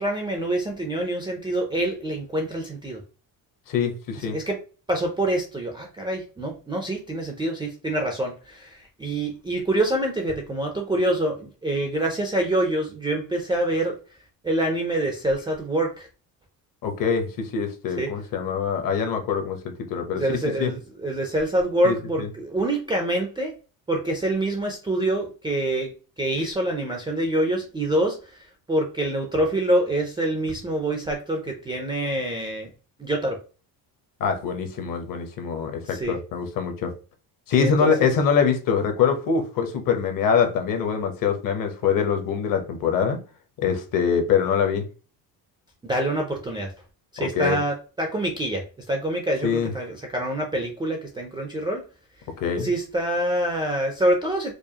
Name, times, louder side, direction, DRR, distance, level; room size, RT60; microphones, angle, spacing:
voice 1, 0.0-3.0 4.1-4.6 4.9-14.0 14.4-16.1 18.0-18.1 20.1-23.5 23.9-25.9 26.2-28.4 28.7-32.7 33.0-33.4 35.8-36.1 37.6-37.9 45.8-46.7 47.1-51.8 52.6-54.5, right 1 dB, 10° right, 0.3 m, -26 dB
voice 2, 3.7-4.4 16.8-20.2 20.6-20.7 21.8-22.3 34.2-36.9 37.5-43.2 43.6-44.8 47.3-47.6 49.4-49.7 52.4-52.7, left 6 dB, 50° left, 0.9 m, -24 dB
4.7 x 2.4 x 2.7 m
cardioid pair, 170°, 43 cm